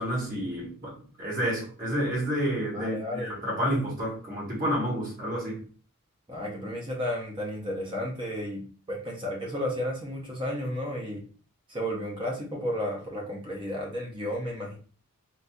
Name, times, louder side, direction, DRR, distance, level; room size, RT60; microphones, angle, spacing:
voice 1, 0.0-5.6, equal, 40° right, 1.4 m, -30 dB
voice 2, 2.7-3.3 3.6-3.7 6.3-11.2 11.7-14.8, equal, 20° right, 0.6 m, -33 dB
3.8 x 2.6 x 2.2 m
head